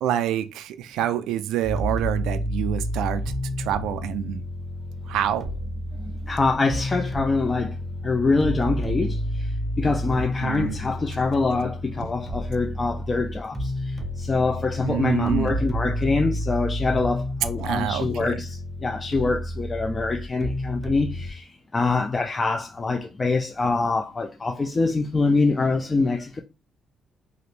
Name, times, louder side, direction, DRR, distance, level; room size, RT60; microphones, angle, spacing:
voice 1, 0.0-4.4 5.1-5.5 10.4-10.8 14.8-15.6 17.6-18.4, right 11 dB, 90° right, 0.3 m, -27 dB
sound 1, 1.6-21.3, equal, 25° right, 0.6 m, -30 dB
voice 2, 6.0-7.7 8.0-9.5 9.8-26.4, left 3 dB, 30° left, 0.4 m, -25 dB
2.9 x 2.5 x 3.2 m
cardioid pair, 90°, 0 cm